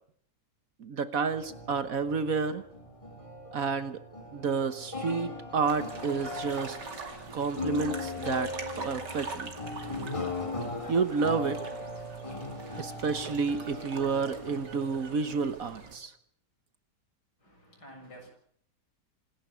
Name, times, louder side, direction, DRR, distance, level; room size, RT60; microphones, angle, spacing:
voice 1, 0.8-2.6 3.5-4.0 4.3-6.8 7.3-9.5 10.9-11.6 12.8-16.1, right 5 dB, 55° right, 12 dB, 1.4 m, -30 dB
sound 1, 1.3-16.0, left 2 dB, 20° left, 2.9 m, -39 dB
sound 2, 5.7-16.0, right 4 dB, 80° right, 3.2 m, -44 dB
voice 2, 17.4-18.3, equal, 70° left, 2 dB, 7.6 m, -50 dB
27.0 x 11.5 x 9.4 m, 0.65 s
omnidirectional pair, 1.8 m